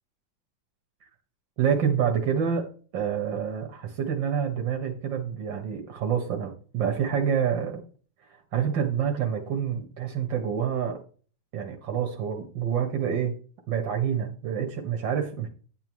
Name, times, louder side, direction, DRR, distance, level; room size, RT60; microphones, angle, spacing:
voice 1, 1.6-2.7 2.9-7.8 8.5-11.0 11.5-13.3 13.7-15.5, right 7 dB, 85° right, 2 dB, 2.0 m, -27 dB
10.5 x 9.0 x 3.1 m, 0.40 s
omnidirectional pair, 2.0 m